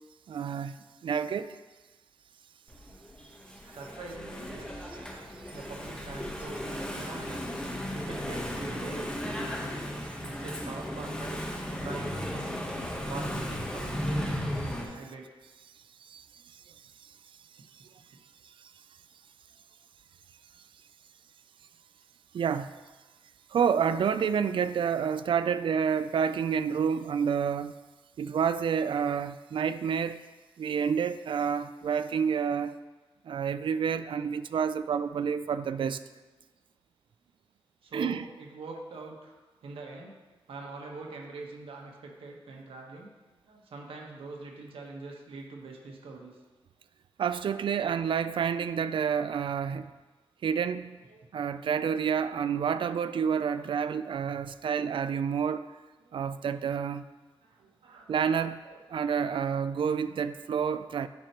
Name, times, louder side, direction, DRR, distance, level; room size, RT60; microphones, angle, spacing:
voice 1, 0.3-0.7 1.0-1.5 16.1-16.2 16.5-16.6 18.6-18.7 22.3-22.7 23.5-27.7 28.2-30.2 30.6-32.8 33.2-36.0 37.9-38.2 47.2-49.9 50.4-51.0 51.3-55.7 56.1-57.0 58.1-58.6 58.9-61.1, right 7 dB, 65° right, 0.4 m, -29 dB
Engine / Mechanisms, 2.7-14.8, equal, 10° left, 1.0 m, -35 dB
voice 2, 3.7-4.9 5.5-7.5 7.9-9.7 10.2-12.6 13.1-15.3 37.8-39.3 39.6-40.2 40.5-43.1 43.4-46.4 48.2-48.3 51.1-51.2 56.0-56.3 57.4-58.2 58.6-58.8, right 3 dB, 80° right, 1.2 m, -44 dB
12.0 x 4.5 x 3.0 m
wide cardioid pair, 95°, 9 cm